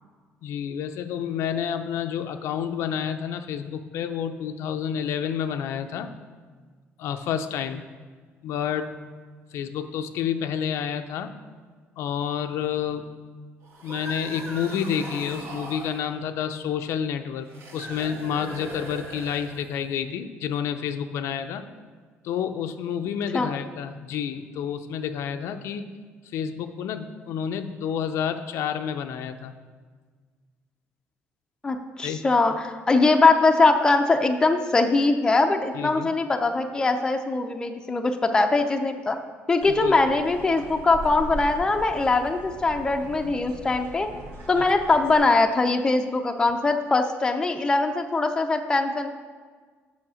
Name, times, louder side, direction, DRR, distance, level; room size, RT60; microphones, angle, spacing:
voice 1, 0.4-6.1 7.0-7.8 8.4-8.9 9.5-11.3 12.0-13.1 13.8-17.5 17.7-21.7 22.2-25.9 26.3-29.5 32.0-32.2 35.7-36.1 39.8-39.9 44.6-44.7, left 8 dB, 75° left, 8 dB, 0.5 m, -29 dB
sound 1, 13.6-16.1 17.5-19.9, right 1 dB, 60° right, 1.7 m, -39 dB
voice 2, 31.6-39.2 39.5-44.1 44.5-49.1, left 3 dB, 15° left, 5 dB, 0.5 m, -22 dB
sound 2, 39.6-45.2, equal, 80° right, 1.7 m, -39 dB
7.4 x 5.7 x 6.3 m, 1.5 s
cardioid pair, 155°, 5 cm